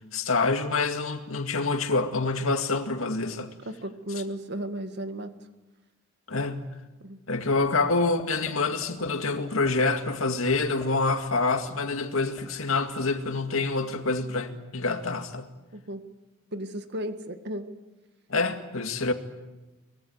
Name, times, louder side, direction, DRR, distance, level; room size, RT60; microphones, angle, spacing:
voice 1, 0.1-3.5 6.3-6.7 7.3-15.5 18.3-19.1, left 3 dB, 75° left, 2.1 m, -26 dB
voice 2, 3.7-5.3 7.0-7.2 15.7-16.0 16.5-17.7, right 1 dB, 55° right, 1.9 m, -34 dB
sound 1, 7.6-7.9 8.2-8.5 8.8-9.1 9.5-9.7 10.0-10.1 10.5-11.1 11.4-12.4, left 1 dB, 10° left, 3.8 m, -44 dB
24.0 x 22.0 x 8.0 m
head